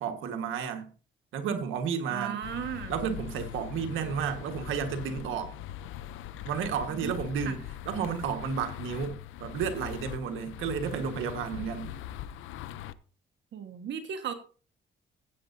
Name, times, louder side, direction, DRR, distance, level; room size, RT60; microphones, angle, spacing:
voice 1, 0.0-0.9 1.3-2.4 2.9-5.5 6.4-11.9, right 7 dB, 90° right, 1.5 m, -32 dB
voice 2, 2.1-2.9 7.0-7.1 7.4-7.5 13.5-14.3, right 8 dB, 65° right, 1.4 m, -35 dB
sound 1, 2.4-12.9, left 11 dB, 90° left, 0.6 m, -41 dB
16.0 x 8.2 x 2.7 m
cardioid pair, 90°, 20 cm